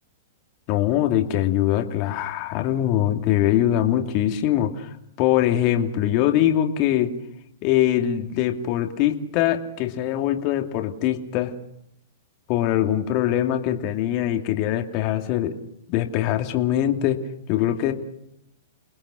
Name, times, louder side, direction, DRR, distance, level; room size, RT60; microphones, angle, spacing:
voice 1, 0.7-7.1 7.6-11.5 12.5-15.6 15.9-17.2 17.5-17.9, left 12 dB, 45° left, 4 dB, 2.6 m, -22 dB
29.5 x 20.0 x 6.4 m, 0.78 s
hypercardioid pair, 130°, 0 cm